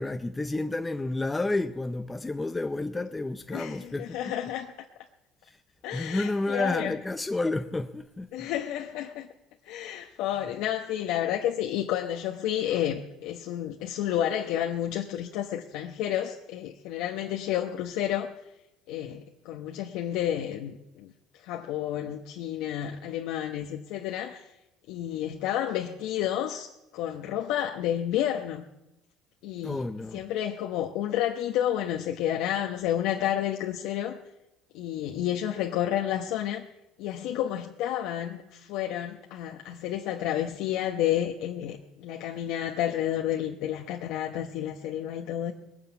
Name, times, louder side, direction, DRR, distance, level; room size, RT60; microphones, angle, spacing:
voice 1, 0.0-4.2 5.4-5.6 5.9-8.5 29.6-30.2, left 2 dB, 15° left, 0.6 m, -30 dB
voice 2, 3.5-4.7 5.8-7.0 8.3-9.3 9.6-18.3 18.9-24.5 24.9-28.7 29.4-29.8 30.1-34.2 34.7-36.6 37.0-45.5, left 11 dB, 75° left, 1.0 m, -30 dB
20.5 x 9.0 x 7.1 m
supercardioid pair, 95°, 0 cm